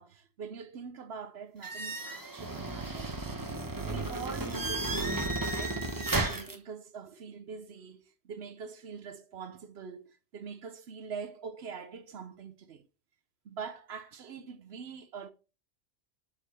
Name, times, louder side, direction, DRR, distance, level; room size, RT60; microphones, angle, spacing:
voice 1, 0.0-3.1 3.8-5.2 5.4-12.8 13.4-15.3, right 6 dB, 65° right, 0.9 m, -44 dB
sound 1, 1.6-6.5, right 2 dB, 20° right, 0.8 m, -33 dB
6.8 x 5.0 x 4.3 m
omnidirectional pair, 1.2 m